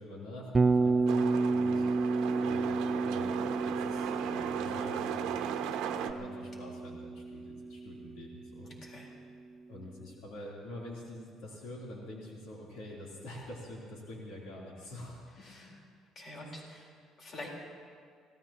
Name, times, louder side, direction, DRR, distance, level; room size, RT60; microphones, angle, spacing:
voice 1, 0.0-5.3 6.0-8.7 9.7-15.8, left 1 dB, 85° left, -4 dB, 3.3 m, -46 dB
Bass guitar, 0.5-8.6, right 3 dB, 20° right, 0.4 m, -31 dB
sound 1, 1.1-6.1, right 9 dB, 90° right, 0.9 m, -37 dB
voice 2, 8.6-9.1 15.3-15.8 16.1-17.5, left 1 dB, 45° left, -2 dB, 4.2 m, -47 dB
26.0 x 17.5 x 3.0 m, 2.1 s
cardioid pair, 130°, 0 cm